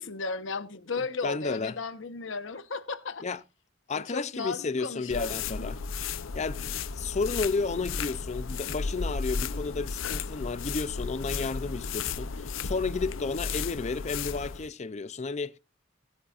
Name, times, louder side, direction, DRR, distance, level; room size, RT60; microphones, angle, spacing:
voice 1, 0.0-3.2 3.9-5.7, left 4 dB, 70° left, 1.0 m, -35 dB
voice 2, 1.0-1.8 3.2-3.4 3.9-5.8 6.3-15.5, left 4 dB, 35° left, 0.5 m, -32 dB
sound 1, 5.1-14.7, left 5 dB, 90° left, 0.6 m, -34 dB
18.5 x 8.4 x 2.5 m
head